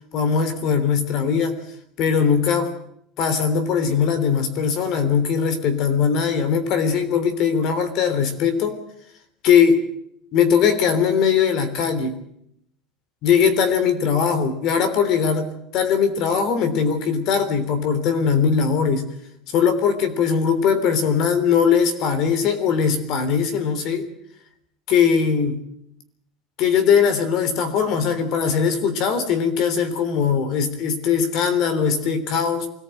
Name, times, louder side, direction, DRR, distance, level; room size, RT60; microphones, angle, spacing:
voice 1, 0.1-1.6 2.0-2.7 3.2-8.8 9.4-9.8 10.3-12.2 13.2-19.1 19.5-24.1 24.9-25.6 26.6-32.7, left 6 dB, 40° left, 11 dB, 3.4 m, -20 dB
24.5 x 18.5 x 9.1 m, 0.73 s
cardioid pair, 175°, 0 cm